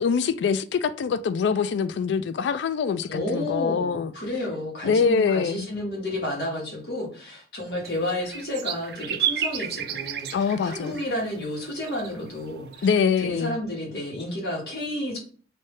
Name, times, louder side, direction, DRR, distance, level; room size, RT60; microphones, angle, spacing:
voice 1, 0.0-4.1 4.8-5.7 10.3-11.0 12.8-13.6, left 6 dB, 85° left, 0.3 m, -24 dB
voice 2, 3.1-12.9 13.2-15.2, left 1 dB, 65° left, 1.4 m, -31 dB
sound 1, 7.9-13.3, right 9 dB, 60° right, 0.4 m, -33 dB
3.4 x 2.7 x 3.2 m
head